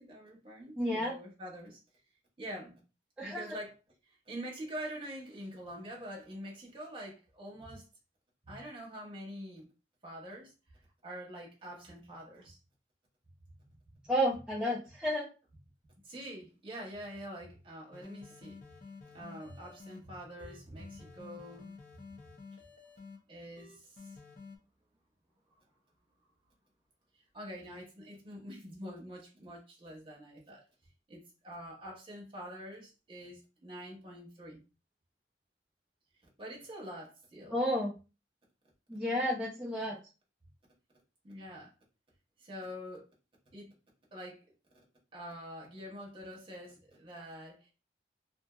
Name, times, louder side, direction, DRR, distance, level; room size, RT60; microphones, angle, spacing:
voice 1, 0.0-1.8 2.4-2.8 3.2-3.7 4.3-7.9 8.4-9.7 10.0-12.6 13.9-14.0 16.0-18.6 19.1-22.2 23.3-24.2 27.3-30.7 31.1-34.6 36.4-37.6 41.2-41.7 42.4-43.1 43.5-43.7 44.1-44.4 45.1-47.7, equal, 30° right, 0.9 m, -45 dB
voice 2, 0.8-1.1 3.2-3.6 14.1-15.3 37.5-37.9 38.9-40.0, equal, 5° right, 0.4 m, -31 dB
sound 1, 17.9-20.0 20.4-23.2 23.6-24.6, left 4 dB, 50° left, 0.5 m, -51 dB
2.6 x 2.5 x 2.3 m
head